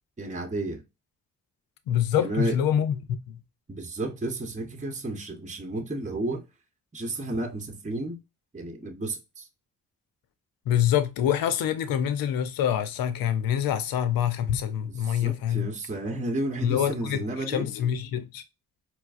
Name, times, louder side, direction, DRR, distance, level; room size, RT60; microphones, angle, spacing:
voice 1, 0.2-0.8 2.2-2.6 3.7-6.4 6.9-8.2 8.5-9.5 15.0-17.7, right 2 dB, 20° right, 0.8 m, -32 dB
voice 2, 1.9-3.0 3.3-3.4 10.7-15.7 16.6-18.4, left 10 dB, 85° left, 0.6 m, -26 dB
4.5 x 2.0 x 2.4 m
supercardioid pair, 45°, 34 cm